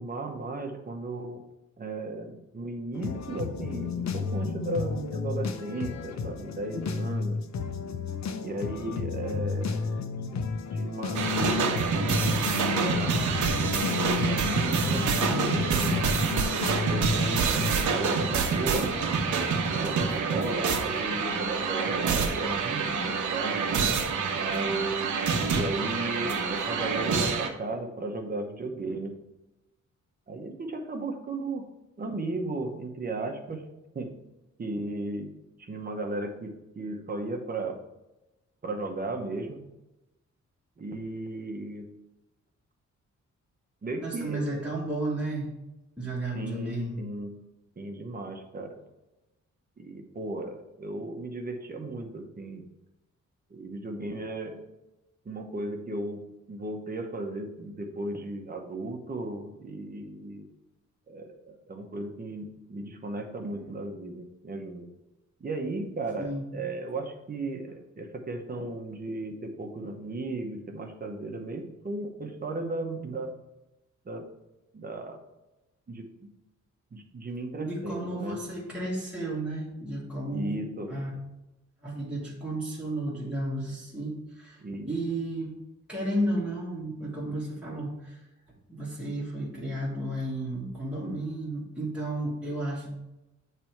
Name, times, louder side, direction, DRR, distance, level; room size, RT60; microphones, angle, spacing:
voice 1, 0.0-1.4 1.8-7.4 8.4-10.1 10.7-11.7 12.2-13.2 14.1-16.4 16.9-18.9 19.6-23.6 24.3-25.1 25.5-29.1 30.3-31.7 32.0-33.6 33.9-34.1 34.6-35.3 35.6-37.8 38.6-39.6 40.8-41.9 43.8-44.7 46.3-47.3 47.8-48.7 49.8-52.6 53.5-54.6 55.2-56.2 56.5-60.5 61.1-64.9 65.4-73.4 74.0-74.2 74.7-75.2 75.9-76.3 76.9-78.4 80.3-80.9 84.6-84.9, right 2 dB, 30° right, 3 dB, 0.9 m, -35 dB
sound 1, 2.9-18.0, left 5 dB, 65° left, 0.7 m, -32 dB
sound 2, 11.1-27.5, right 5 dB, 80° right, 1.0 m, -27 dB
voice 2, 44.0-45.5 46.0-47.1 63.5-63.7 66.2-66.5 77.6-80.6 80.9-81.1 81.8-84.6 84.8-85.5 85.9-88.2 88.7-92.9, right 1 dB, 5° right, -6 dB, 1.5 m, -33 dB
8.6 x 3.4 x 4.5 m, 0.96 s
wide cardioid pair, 140°, 30 cm